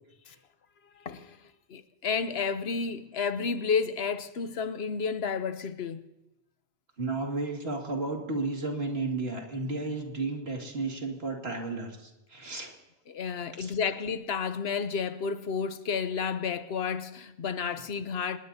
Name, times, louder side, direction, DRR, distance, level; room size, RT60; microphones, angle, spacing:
voice 1, 1.0-1.4 1.7-6.0 13.1-18.4, left 6 dB, 75° left, 1.0 m, -31 dB
voice 2, 7.0-12.7 13.6-13.7, right 3 dB, 75° right, 2.5 m, -33 dB
26.0 x 20.0 x 2.8 m
omnidirectional pair, 1.1 m